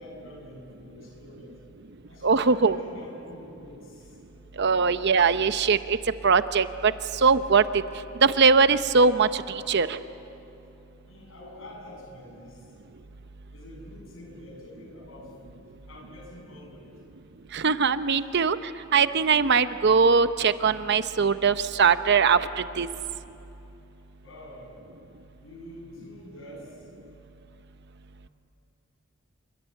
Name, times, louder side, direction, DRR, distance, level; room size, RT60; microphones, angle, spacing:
voice 1, 0.0-1.6 2.1-4.0 4.3-4.4 11.1-12.5 13.5-17.0 18.1-18.2 22.7-22.8 24.2-24.7 25.4-26.7, left 1 dB, 70° left, 0 dB, 7.3 m, -46 dB
voice 2, 2.2-2.8 4.6-6.0 6.2-7.7 8.2-10.0 17.5-18.6 18.9-22.9, right 5 dB, 55° right, 12 dB, 0.8 m, -21 dB
28.0 x 23.0 x 9.0 m, 2.9 s
head